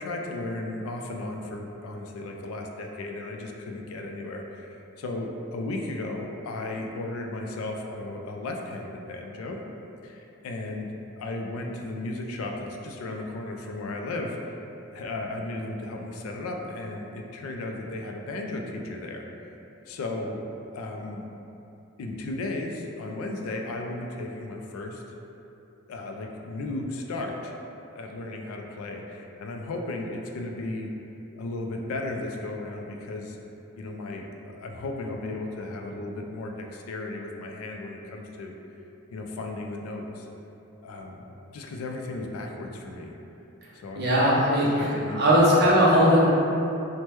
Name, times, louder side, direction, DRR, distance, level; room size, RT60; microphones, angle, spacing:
voice 1, 0.0-9.6 10.0-14.4 14.9-19.3 19.9-20.4 20.7-21.2 22.0-25.0 25.9-27.5 27.9-30.9 31.4-33.4 33.8-38.6 39.1-40.3 40.8-41.2 41.5-43.1 43.7-45.5, left 2 dB, 80° left, 2 dB, 0.3 m, -35 dB
voice 2, 44.0-46.3, equal, 50° right, -5 dB, 0.5 m, -19 dB
3.2 x 2.1 x 2.9 m, 2.9 s
head